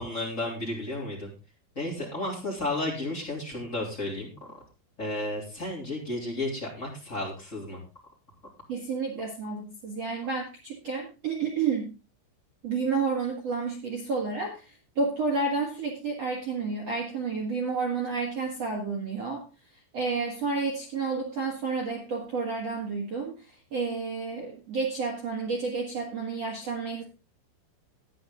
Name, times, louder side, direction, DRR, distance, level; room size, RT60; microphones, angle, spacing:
voice 1, 0.0-1.3 1.7-4.6 5.0-7.8, left 2 dB, 20° left, -2 dB, 3.0 m, -33 dB
voice 2, 8.7-11.9 12.6-19.4 19.9-23.5 23.7-27.0, right 4 dB, 55° right, 0 dB, 1.9 m, -30 dB
12.5 x 9.9 x 3.8 m, 0.30 s
omnidirectional pair, 5.6 m